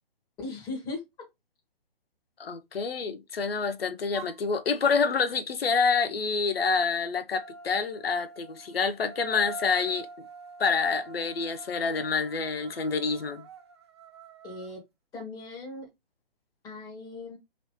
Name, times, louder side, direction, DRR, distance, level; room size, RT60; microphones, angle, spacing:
voice 1, 0.4-1.0 14.4-14.8 15.1-15.9 16.6-17.4, left 3 dB, 10° left, 1.1 m, -38 dB
voice 2, 2.4-10.1 10.6-13.4, left 5 dB, 80° left, 0.5 m, -27 dB
sound 1, 4.1-4.4 7.3-14.7, right 2 dB, 30° right, 0.4 m, -45 dB
3.0 x 2.7 x 3.1 m
figure-of-eight pair, 135°, 29 cm